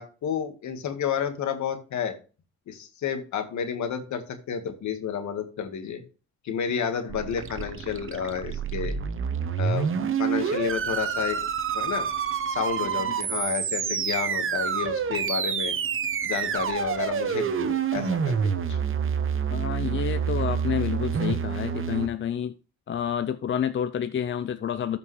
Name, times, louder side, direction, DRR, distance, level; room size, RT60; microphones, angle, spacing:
voice 1, 0.0-2.1 2.7-6.0 6.4-9.0 9.6-9.9 10.2-11.4 11.7-12.1 12.5-15.8 16.2-18.8, left 7 dB, 70° left, 1.8 m, -31 dB
sound 1, 7.1-22.1, right 7 dB, 45° right, 1.0 m, -28 dB
voice 2, 19.5-22.5 22.9-25.0, left 9 dB, 40° left, 0.6 m, -29 dB
13.5 x 5.3 x 3.3 m
cardioid pair, 90°, 30 cm